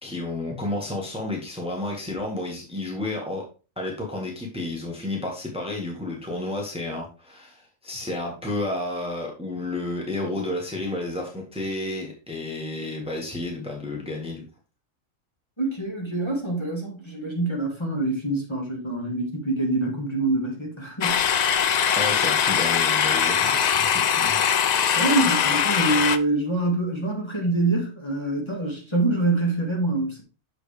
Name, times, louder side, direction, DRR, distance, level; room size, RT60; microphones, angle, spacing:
voice 1, 0.0-3.4 3.8-14.4 22.0-24.6, left 2 dB, 5° right, 1.6 m, -31 dB
voice 2, 15.6-21.6 25.0-30.2, right 2 dB, 20° left, 2.0 m, -25 dB
sound 1, 21.0-26.2, left 8 dB, 80° left, 0.3 m, -21 dB
6.8 x 6.1 x 3.4 m
omnidirectional pair, 1.3 m